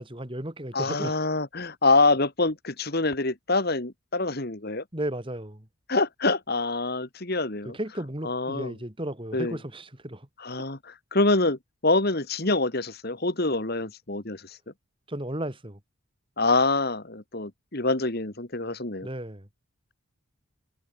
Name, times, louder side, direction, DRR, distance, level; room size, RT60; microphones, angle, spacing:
voice 1, 0.0-1.2 4.9-5.7 7.6-10.3 15.1-15.8 19.0-19.5, right 1 dB, 25° right, 2.5 m, -34 dB
voice 2, 0.7-4.8 5.9-7.8 8.2-8.7 9.3-9.6 10.4-14.6 16.4-19.1, left 3 dB, 45° left, 2.0 m, -26 dB
head